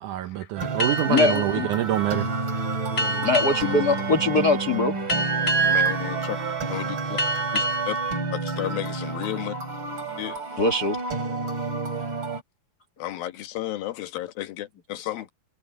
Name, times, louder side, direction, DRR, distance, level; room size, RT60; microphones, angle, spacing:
voice 1, 0.0-2.3, right 14 dB, 75° right, 1.9 m, -26 dB
sound 1, 0.6-12.4, right 3 dB, 35° right, 3.5 m, -31 dB
sound 2, 0.8-9.9, equal, 30° left, 1.6 m, -31 dB
voice 2, 1.1-1.7 3.2-5.0 10.6-11.0, left 3 dB, 60° left, 1.0 m, -22 dB
Wind instrument woodwind instrument, 2.0-4.9 5.1-8.2, right 6 dB, 55° right, 3.6 m, -30 dB
voice 3, 2.9-3.3 5.7-6.4 6.7-7.2 7.5-8.0 8.3-9.5 10.2-10.4 13.0-15.3, left 14 dB, 80° left, 3.1 m, -33 dB
omnidirectional pair, 4.2 m